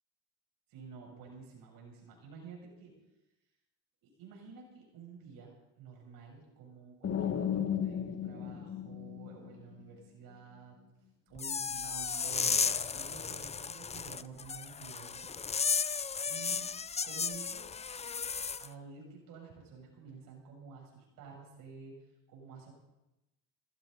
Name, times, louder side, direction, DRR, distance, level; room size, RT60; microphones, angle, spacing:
voice 1, 0.7-2.9 4.0-10.8 11.3-15.3 16.3-16.7 17.0-17.8 18.6-21.9 22.3-22.7, right 5 dB, 75° right, -1 dB, 7.1 m, -50 dB
sound 1, 7.0-9.8, left 9 dB, 45° left, 1.9 m, -35 dB
sound 2, 11.4-18.7, left 6 dB, 20° left, 0.5 m, -34 dB
18.5 x 15.5 x 4.1 m, 0.95 s
supercardioid pair, 90°, 35 cm